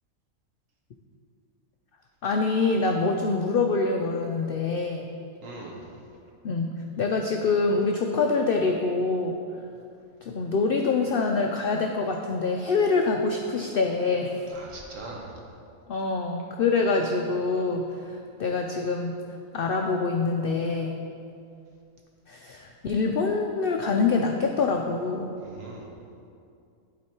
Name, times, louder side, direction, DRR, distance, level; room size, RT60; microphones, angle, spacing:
voice 1, 2.2-5.1 6.4-9.4 10.2-14.4 15.9-19.2 19.5-21.0 22.3-25.3, left 4 dB, 80° left, 2 dB, 0.5 m, -25 dB
voice 2, 5.4-5.9 14.5-15.3 25.4-25.9, right 2 dB, 65° right, -1 dB, 1.5 m, -41 dB
11.5 x 4.0 x 4.5 m, 2.5 s
omnidirectional pair, 1.5 m